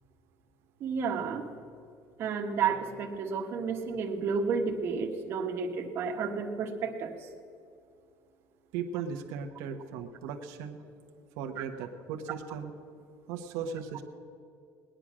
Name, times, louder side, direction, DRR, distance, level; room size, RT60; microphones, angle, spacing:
voice 1, 0.8-1.5 2.2-7.3, right 5 dB, 40° right, 2 dB, 1.4 m, -31 dB
voice 2, 8.7-10.8 11.4-12.7 13.3-14.0, right 6 dB, 85° right, 4 dB, 1.1 m, -37 dB
19.0 x 10.0 x 6.2 m, 2.4 s
cardioid pair, 170°, 6 cm